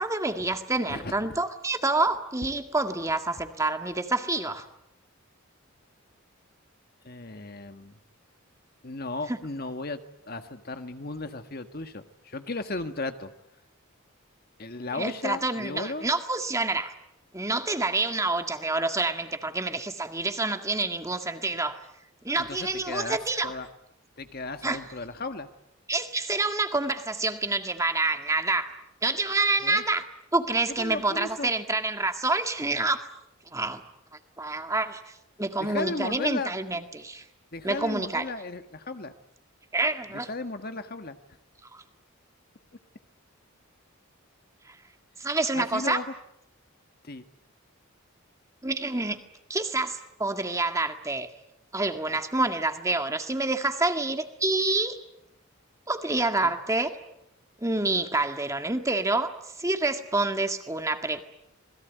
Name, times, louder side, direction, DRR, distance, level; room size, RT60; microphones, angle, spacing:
voice 1, 0.0-4.7 9.3-9.4 14.9-16.9 17.3-21.8 22.2-23.5 24.6-24.8 25.9-28.8 29.0-30.1 30.3-33.0 33.5-33.8 34.4-37.2 37.6-38.3 39.7-40.3 41.7-41.8 44.7-44.8 45.2-46.0 48.6-49.2 49.5-51.3 51.7-55.0 55.9-57.0 57.6-59.3 59.6-61.2, right 2 dB, 15° right, 7 dB, 1.8 m, -27 dB
voice 2, 0.9-1.4 7.0-7.9 8.8-13.3 14.6-16.1 22.4-23.2 23.4-23.7 24.2-25.5 29.6-29.8 30.7-31.5 35.6-36.5 37.5-39.1 40.3-41.2 45.5-46.0 47.0-47.2 56.4-56.5, left 3 dB, 45° left, 8 dB, 1.6 m, -35 dB
27.5 x 21.0 x 9.3 m, 0.80 s
head